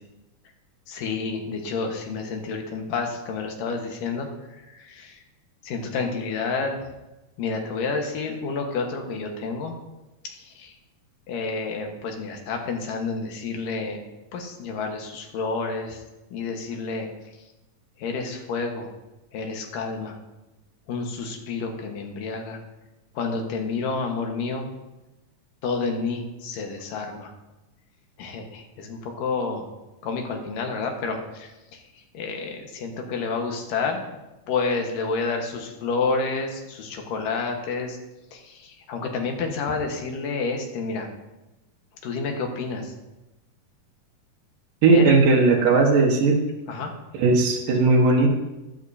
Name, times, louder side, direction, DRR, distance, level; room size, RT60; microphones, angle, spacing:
voice 1, 0.9-4.3 4.6-5.2 5.6-6.9 7.4-9.8 10.2-10.7 11.3-14.0 14.3-16.0 16.3-17.1 18.0-18.9 19.3-20.2 20.9-22.6 23.1-24.7 25.6-27.3 28.2-29.6 30.0-34.1 34.5-38.0 38.3-41.1 42.0-42.9 44.9-45.2 45.5-45.6 46.7-46.9, left 4 dB, 85° left, 2 dB, 3.0 m, -29 dB
voice 2, 44.8-46.4 47.2-48.3, right 3 dB, 80° right, 1 dB, 3.0 m, -17 dB
13.5 x 12.0 x 2.7 m, 1.0 s
omnidirectional pair, 3.7 m